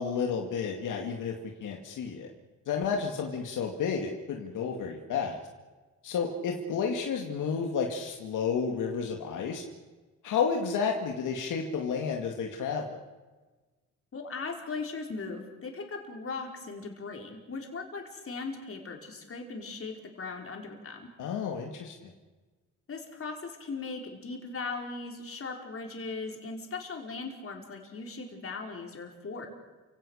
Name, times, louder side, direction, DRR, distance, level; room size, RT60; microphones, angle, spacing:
voice 1, 0.0-1.3 1.6-2.3 2.7-5.4 6.0-9.6 10.2-13.0 21.2-22.1, left 6 dB, 80° left, 2 dB, 2.4 m, -31 dB
voice 2, 14.1-21.1 22.9-29.5, left 4 dB, 45° left, 2 dB, 5.1 m, -38 dB
29.5 x 17.0 x 6.6 m, 1.3 s
cardioid pair, 85°, 30 cm